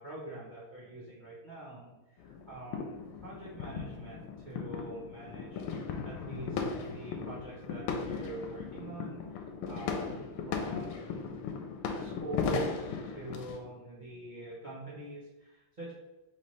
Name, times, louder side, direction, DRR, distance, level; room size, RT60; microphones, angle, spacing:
voice 1, 0.0-11.3 11.9-15.9, right 2 dB, 65° right, -8 dB, 0.4 m, -44 dB
sound 1, 2.2-13.6, left 5 dB, 80° left, 1.4 m, -37 dB
3.8 x 3.2 x 4.1 m, 1.0 s
omnidirectional pair, 2.4 m